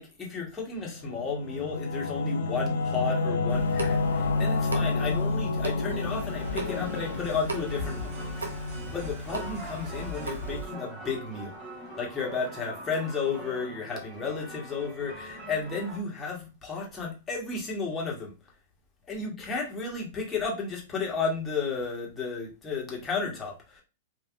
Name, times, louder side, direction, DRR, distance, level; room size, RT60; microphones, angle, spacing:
voice 1, 0.0-8.1 8.3-8.5 8.9-11.6 12.0-18.3 19.1-23.8, left 4 dB, 20° left, 1.3 m, -33 dB
Singing / Musical instrument, 0.9-10.1, left 3 dB, 65° left, 0.6 m, -30 dB
Water tap faucet / Sink (filling or washing) / Drip, 3.5-10.7, right 1 dB, 85° right, 0.7 m, -38 dB
sound 1, 6.0-16.0, right 1 dB, 25° right, 1.1 m, -43 dB
3.4 x 2.4 x 2.4 m
hypercardioid pair, 105°, 0 cm